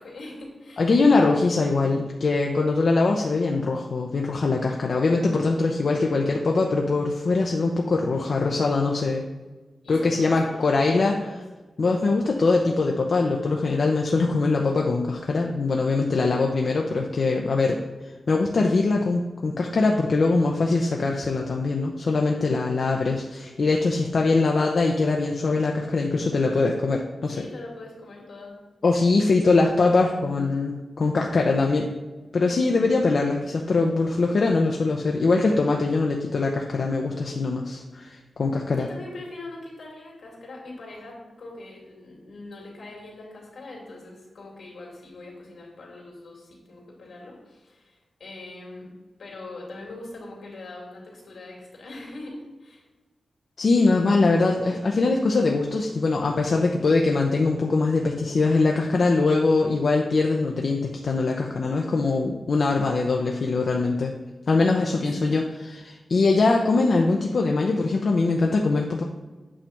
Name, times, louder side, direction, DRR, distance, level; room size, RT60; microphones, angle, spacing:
voice 1, 0.0-0.9 5.9-6.7 9.8-11.4 27.3-28.6 29.2-30.1 38.6-48.9 49.2-52.8 65.2-65.4, left 2 dB, 80° left, -3 dB, 2.7 m, -42 dB
voice 2, 0.8-9.2 9.9-11.1 11.8-27.3 28.8-31.9 32.3-38.9 53.6-64.1 64.5-69.0, left 3 dB, 60° left, 1 dB, 0.7 m, -22 dB
8.8 x 3.4 x 5.8 m, 1.2 s
wide cardioid pair, 95°, 0 cm